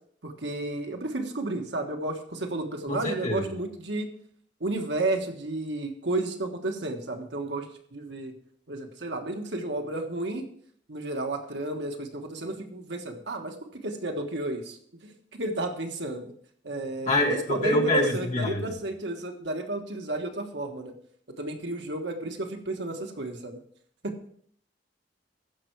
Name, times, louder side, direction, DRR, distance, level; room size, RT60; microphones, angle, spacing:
voice 1, 0.2-4.1 4.6-7.7 7.9-8.3 8.7-10.5 10.9-14.8 15.0-16.3 16.6-20.9 21.4-23.6 24.0-24.1, right 2 dB, 80° right, 4 dB, 1.4 m, -32 dB
voice 2, 2.9-3.5 17.1-18.7, left 1 dB, 40° left, 0 dB, 1.8 m, -26 dB
14.5 x 5.7 x 4.7 m, 0.63 s
head